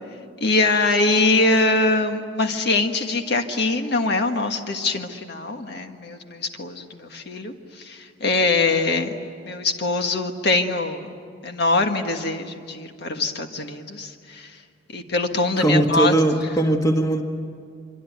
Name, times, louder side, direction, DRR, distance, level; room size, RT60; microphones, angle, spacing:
voice 1, 0.4-9.1 9.5-11.1 11.4-14.6 14.9-16.1, left 3 dB, 60° left, 5 dB, 1.6 m, -23 dB
voice 2, 15.6-17.2, right 2 dB, 20° left, 4 dB, 1.6 m, -19 dB
25.5 x 24.5 x 9.4 m, 2.2 s
head